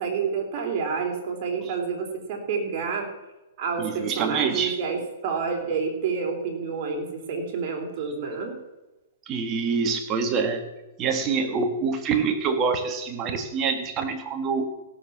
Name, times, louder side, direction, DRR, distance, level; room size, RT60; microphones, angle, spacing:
voice 1, 0.0-3.1 3.6-8.6, right 5 dB, 45° right, 2 dB, 3.7 m, -29 dB
voice 2, 3.8-4.8 9.3-10.7 11.0-14.7, right 5 dB, 25° right, 7 dB, 1.7 m, -26 dB
16.0 x 7.2 x 7.3 m, 1.1 s
hypercardioid pair, 145°, 0 cm